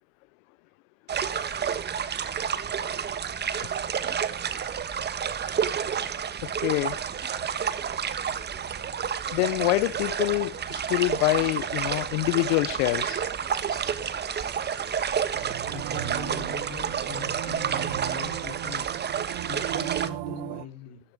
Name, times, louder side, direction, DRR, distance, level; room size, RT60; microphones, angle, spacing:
sound 1, 1.1-20.1, right 7 dB, 25° right, 1.3 m, -30 dB
voice 1, 6.4-7.0 9.3-13.2, left 23 dB, 70° left, 0.8 m, -26 dB
sound 2, 10.4-15.2, equal, ahead, 5.6 m, -56 dB
sound 3, 15.3-20.7, right 20 dB, 60° right, 0.8 m, -36 dB
voice 2, 15.6-18.9 19.5-21.0, left 10 dB, 40° left, 3.6 m, -42 dB
14.5 x 11.0 x 5.0 m
supercardioid pair, 120°, 42 cm